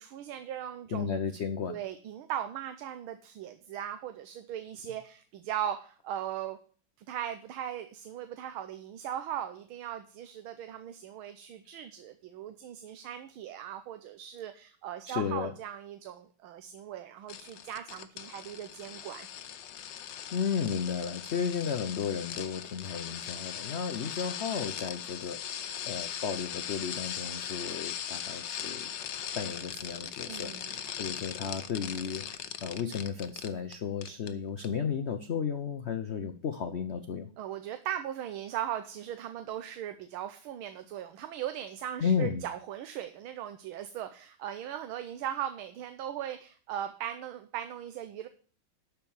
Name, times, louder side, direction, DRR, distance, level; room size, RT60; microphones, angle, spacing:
voice 1, 0.0-1.1 1.7-6.6 7.1-19.3 30.3-31.0 37.4-48.3, right 10 dB, 85° right, 8 dB, 1.6 m, -38 dB
voice 2, 0.9-1.8 15.1-15.5 20.3-28.9 29.4-37.3 42.0-42.4, left 6 dB, 85° left, 8 dB, 0.5 m, -33 dB
sound 1, 17.3-33.7 34.0-34.3 34.6-34.7, left 9 dB, 65° left, 1.4 m, -39 dB
12.0 x 4.6 x 7.1 m, 0.42 s
omnidirectional pair, 2.2 m